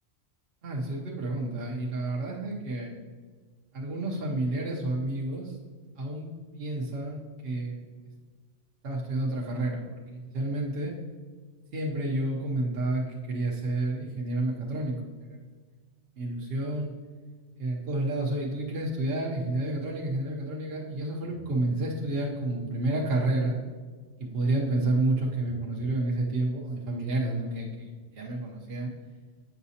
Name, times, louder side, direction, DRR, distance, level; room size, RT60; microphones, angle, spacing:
voice 1, 0.6-2.9 3.7-5.6 6.0-6.3 6.5-7.9 8.8-10.9 11.7-15.4 16.2-16.9 17.6-23.6 24.2-28.9, right 2 dB, 60° right, -2 dB, 1.0 m, -30 dB
7.9 x 6.0 x 2.8 m, 1.5 s
omnidirectional pair, 1.2 m